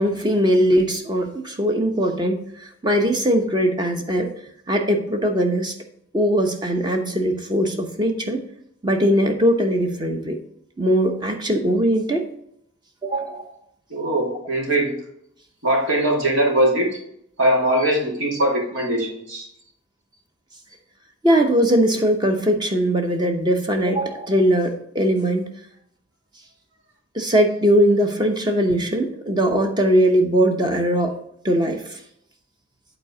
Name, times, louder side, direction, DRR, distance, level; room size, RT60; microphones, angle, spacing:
voice 1, 0.0-2.4 2.8-4.3 4.7-5.7 6.1-8.4 8.8-10.4 10.8-12.2 13.0-13.4 21.2-25.4 27.1-31.1 31.4-32.0, equal, 20° right, 4 dB, 0.9 m, -20 dB
voice 2, 13.9-14.9 15.6-16.9 17.4-19.5, right 1 dB, 90° right, -2 dB, 2.6 m, -21 dB
8.3 x 4.2 x 4.9 m, 0.72 s
head